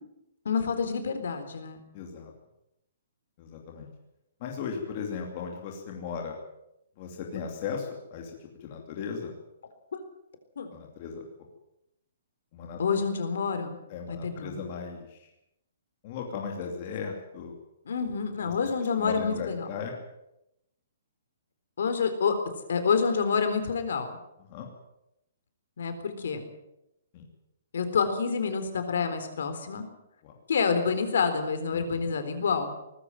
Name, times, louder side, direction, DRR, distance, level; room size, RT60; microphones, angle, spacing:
voice 1, 0.4-1.8 9.9-10.0 10.6-10.7 12.8-13.8 14.1-14.6 17.9-19.7 21.8-22.4 22.7-24.2 25.8-26.5 27.7-29.9 30.5-32.7, left 5 dB, 60° left, 8 dB, 3.9 m, -28 dB
voice 2, 1.9-2.3 3.4-3.9 4.4-6.3 7.0-9.3 10.7-11.2 12.5-12.8 13.9-15.3 16.0-17.5 18.4-18.5 19.0-19.9 24.5-24.7 27.1-27.3 30.2-30.3 31.7-32.1, left 6 dB, 25° left, 1 dB, 2.8 m, -37 dB
19.5 x 15.0 x 9.2 m, 0.84 s
hypercardioid pair, 180°, 0 cm